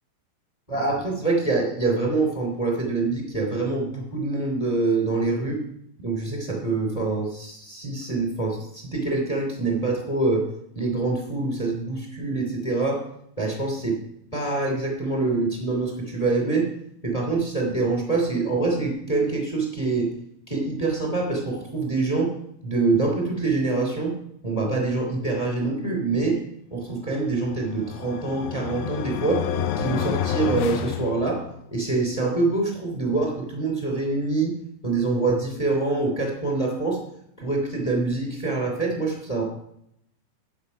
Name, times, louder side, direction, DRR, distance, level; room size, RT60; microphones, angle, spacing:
voice 1, 0.7-5.6 6.0-10.5 10.7-13.0 13.4-14.0 14.3-16.7 17.0-20.1 20.5-22.3 22.6-24.2 24.4-26.4 26.7-29.5 29.8-31.4 31.7-34.6 34.8-37.0 37.4-39.4, right 3 dB, 10° left, 0 dB, 2.4 m, -25 dB
sound 1, 27.5-31.8, left 8 dB, 80° left, 2.4 m, -29 dB
11.5 x 8.3 x 5.6 m, 0.75 s
omnidirectional pair, 4.5 m